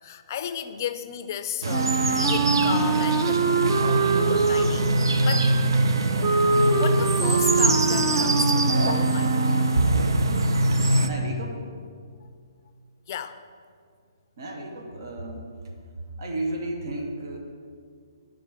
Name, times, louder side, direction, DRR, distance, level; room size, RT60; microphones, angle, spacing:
voice 1, 0.0-4.9 5.2-5.7 6.8-9.4 13.1-13.4, left 9 dB, 45° left, 11 dB, 0.5 m, -34 dB
sound 1, 1.6-11.1, right 2 dB, 75° right, 0.5 m, -23 dB
Wind instrument woodwind instrument, 1.7-9.8, right 3 dB, 30° right, 0.7 m, -25 dB
voice 2, 11.0-11.6 14.4-15.4 16.2-17.4, right 2 dB, 55° right, 1 dB, 1.1 m, -31 dB
9.6 x 3.8 x 6.2 m, 2.1 s
hypercardioid pair, 135°, 2 cm